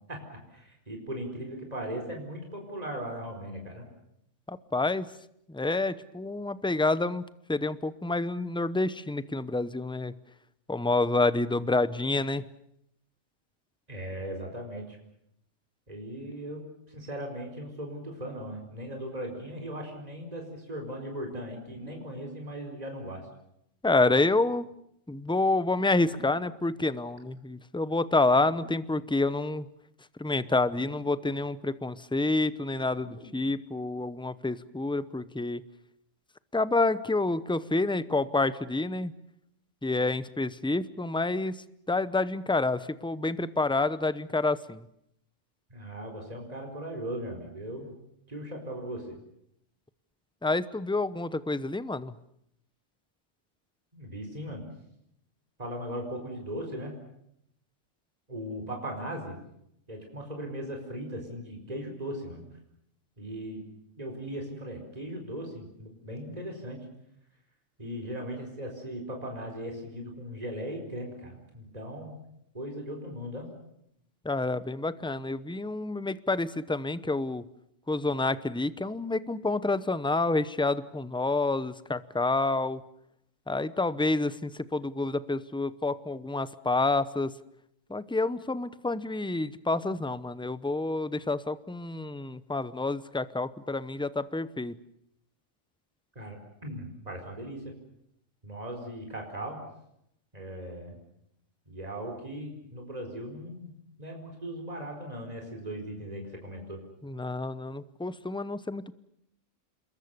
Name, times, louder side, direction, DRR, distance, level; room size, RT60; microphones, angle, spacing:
voice 1, 0.5-3.8 13.9-15.0 15.9-16.6 16.9-23.3 45.7-47.9 48.3-49.2 53.9-54.6 55.6-56.9 58.3-59.4 59.9-62.4 63.2-63.7 64.0-66.8 67.8-72.1 72.5-73.5 96.1-97.7 98.4-99.6 100.3-101.0 101.7-103.7 104.0-106.8, equal, 30° right, 2 dB, 4.8 m, -38 dB
voice 2, 4.5-5.1 5.5-7.2 7.5-10.1 10.7-12.4 23.8-24.7 25.1-29.7 30.2-35.6 36.5-39.1 39.8-44.9 50.4-52.2 74.2-77.4 77.9-82.8 83.5-87.3 87.9-94.8 107.0-108.9, left 2 dB, 5° left, 15 dB, 0.7 m, -28 dB
sound 1, 21.6-22.3 23.9-24.6 26.0-26.7 28.3-29.0 30.6-31.3 32.9-33.6, left 1 dB, 85° left, 4.3 m, -51 dB
27.5 x 22.0 x 6.9 m, 0.75 s
omnidirectional pair, 1.3 m